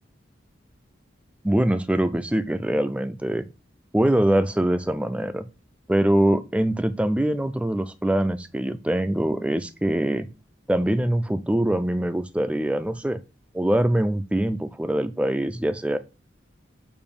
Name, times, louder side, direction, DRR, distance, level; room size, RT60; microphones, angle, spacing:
voice 1, 1.4-3.5 3.9-5.5 5.9-10.3 10.7-13.2 13.5-16.0, right 1 dB, 5° right, 11 dB, 0.3 m, -23 dB
6.9 x 2.6 x 5.1 m, 0.31 s
head